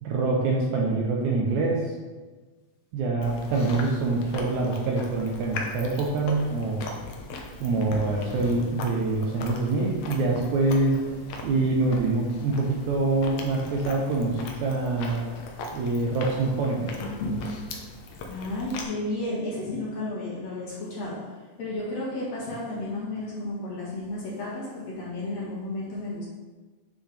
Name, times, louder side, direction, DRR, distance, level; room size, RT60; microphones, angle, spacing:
voice 1, 0.0-1.9 2.9-6.8 7.6-11.0 11.4-15.3 15.7-16.9, right 3 dB, 75° right, -2 dB, 1.9 m, -25 dB
Chewing mastication, 3.2-18.8, left 2 dB, 85° left, 1.4 m, -38 dB
voice 2, 18.3-26.3, left 2 dB, 55° left, -6 dB, 2.5 m, -33 dB
8.1 x 6.2 x 3.3 m, 1.3 s
omnidirectional pair, 4.0 m